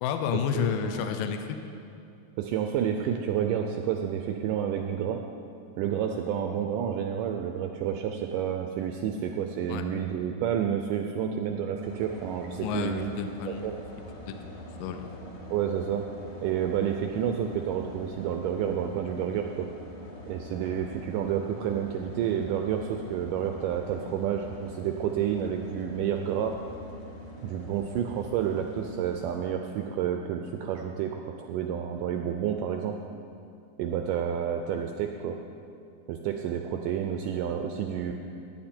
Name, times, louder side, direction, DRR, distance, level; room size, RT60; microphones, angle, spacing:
voice 1, 0.0-1.6 9.7-9.8 12.6-13.7 14.3-15.0, left 8 dB, 80° left, 6 dB, 2.1 m, -31 dB
voice 2, 0.5-1.2 2.4-5.2 5.8-13.1 13.5-13.7 15.5-16.0 16.4-19.7 20.3-26.5 27.4-32.9 33.8-35.4 36.1-38.1, right 9 dB, 85° right, 4 dB, 1.9 m, -30 dB
sound 1, 11.8-29.3, equal, 45° left, 1.6 m, -44 dB
15.0 x 10.0 x 4.4 m, 2.5 s
omnidirectional pair, 4.4 m